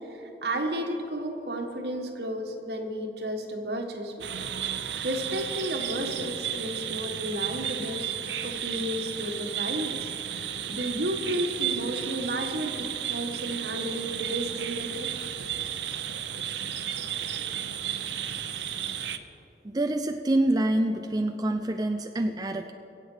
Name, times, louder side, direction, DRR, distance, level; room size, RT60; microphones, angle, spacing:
voice 1, 0.0-4.3 5.0-8.1 8.4-15.1, right 1 dB, 70° right, 4 dB, 1.5 m, -33 dB
sound 1, 4.2-19.2, right 9 dB, 90° right, 0.7 m, -33 dB
voice 2, 19.6-22.7, right 1 dB, 20° right, 6 dB, 0.4 m, -26 dB
22.5 x 8.1 x 5.0 m, 2.9 s
head